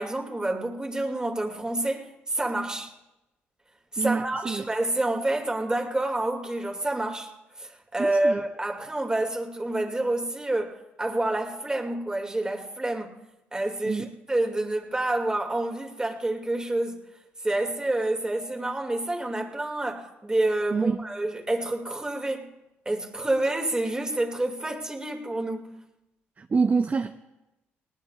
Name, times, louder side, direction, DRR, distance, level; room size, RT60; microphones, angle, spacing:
voice 1, 0.0-2.9 3.9-7.3 7.6-13.2 13.5-17.0 17.4-22.5 22.9-25.7, right 2 dB, 15° right, 2.5 m, -28 dB
voice 2, 4.0-4.6 8.0-8.4 13.8-14.1 20.7-21.0 26.4-27.1, right 4 dB, 35° right, 0.6 m, -26 dB
19.5 x 19.0 x 2.5 m
supercardioid pair, 65°, 5 cm